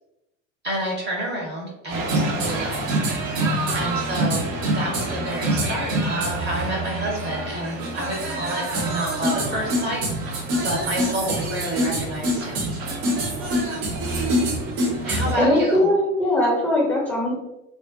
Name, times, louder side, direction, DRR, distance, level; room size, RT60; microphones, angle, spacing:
voice 1, 0.6-3.0 3.7-12.6 15.0-15.8, equal, 25° right, -2 dB, 0.8 m, -29 dB
sound 1, 1.9-15.3, right 1 dB, 55° right, 0.8 m, -25 dB
voice 2, 15.1-17.3, left 1 dB, 5° left, -5 dB, 0.7 m, -21 dB
2.4 x 2.0 x 2.5 m, 0.90 s
figure-of-eight pair, 70°, 38 cm